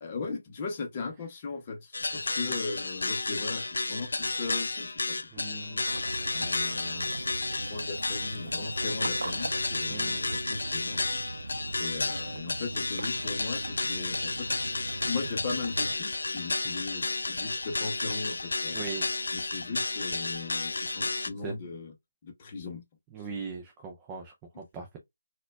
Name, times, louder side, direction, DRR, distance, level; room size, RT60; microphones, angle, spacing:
voice 1, 0.0-7.3 7.6-11.0 11.8-14.5 15.1-18.9 19.3-21.9 22.2-22.8, left 4 dB, 20° left, 0.7 m, -38 dB
sound 1, 1.9-21.3, left 3 dB, 70° left, 0.5 m, -32 dB
voice 2, 5.3-5.8 9.9-10.2 18.7-19.1 21.4-21.5 23.1-25.0, right 5 dB, 10° right, 0.4 m, -40 dB
Waves surf / Splash splatter / Trickle dribble, 5.9-16.0, right 2 dB, 85° right, 0.3 m, -40 dB
4.2 x 2.2 x 2.3 m
hypercardioid pair, 175°, 0 cm